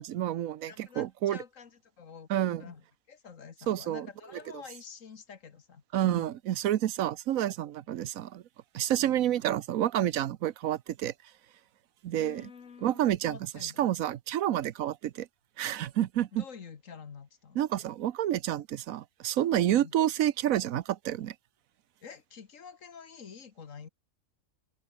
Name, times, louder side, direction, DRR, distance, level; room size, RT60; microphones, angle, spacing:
voice 1, 0.0-1.4 2.3-2.6 3.7-4.1 5.9-8.4 8.7-11.1 12.0-12.5 12.8-15.3 15.6-16.4 17.6-21.3, right 12 dB, 80° right, 1.1 m, -29 dB
voice 2, 0.7-6.4 9.0-9.2 12.2-13.9 16.3-17.6 19.7-19.9 22.0-23.9, left 6 dB, 65° left, 1.8 m, -48 dB
open air
omnidirectional pair, 1.4 m